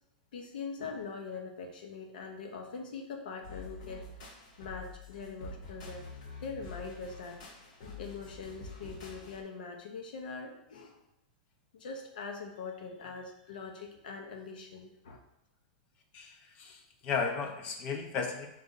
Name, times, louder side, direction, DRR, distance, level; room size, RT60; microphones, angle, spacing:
voice 1, 0.3-4.0 4.6-6.1 6.4-7.4 7.8-11.0 11.7-15.2, left 4 dB, 85° left, 3 dB, 0.8 m, -42 dB
sound 1, 3.4-9.4, left 3 dB, 50° left, 0.9 m, -47 dB
voice 2, 16.1-18.5, left 5 dB, 25° left, 4 dB, 0.4 m, -35 dB
4.1 x 2.5 x 3.8 m, 0.86 s
supercardioid pair, 175°, 5 cm